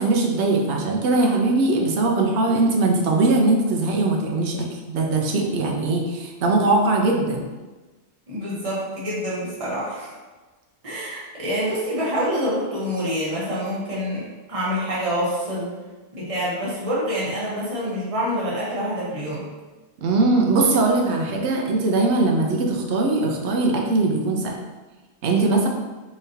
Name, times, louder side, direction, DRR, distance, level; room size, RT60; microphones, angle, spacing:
voice 1, 0.0-7.4 20.0-24.5 25.2-25.7, right 2 dB, 80° right, 1 dB, 0.9 m, -20 dB
voice 2, 8.3-10.1 10.8-15.7 16.1-19.5, equal, 30° right, -7 dB, 1.1 m, -26 dB
3.8 x 3.1 x 2.7 m, 1.2 s
omnidirectional pair, 1.1 m